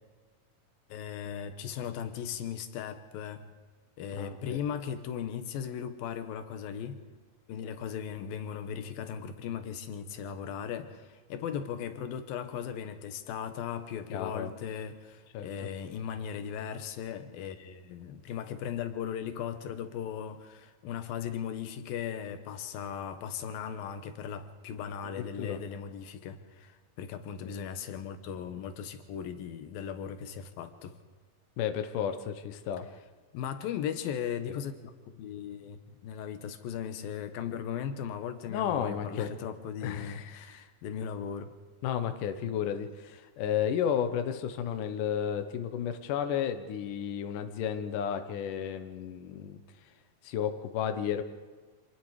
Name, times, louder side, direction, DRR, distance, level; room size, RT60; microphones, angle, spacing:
voice 1, 0.9-3.5 4.0-7.0 7.5-31.0 33.3-34.7 35.1-41.5, left 8 dB, 90° left, 9 dB, 3.0 m, -37 dB
voice 2, 4.2-4.6 14.1-14.5 15.3-15.5 25.2-25.6 27.4-27.6 31.6-32.9 38.5-39.3 39.8-40.4 41.8-49.6 50.2-51.2, left 9 dB, 70° left, 8 dB, 2.6 m, -32 dB
27.0 x 20.0 x 4.9 m, 1.4 s
omnidirectional pair, 4.0 m